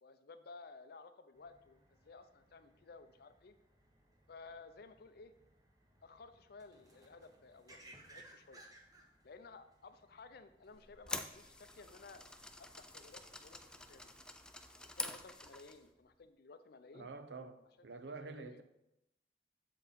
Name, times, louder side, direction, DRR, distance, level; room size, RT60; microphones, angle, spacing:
voice 1, 0.0-3.5 4.3-5.3 6.0-8.6 9.2-12.2 12.6-14.1 14.9-17.1 17.8-17.9 18.2-18.6, left 4 dB, 60° left, 0.5 m, -56 dB
sound 1, 1.3-14.1, right 1 dB, 20° right, 1.0 m, -64 dB
sound 2, 10.7-15.9, left 2 dB, 5° left, 0.4 m, -47 dB
voice 2, 16.9-18.6, right 3 dB, 70° right, 0.6 m, -48 dB
7.3 x 4.6 x 5.1 m
head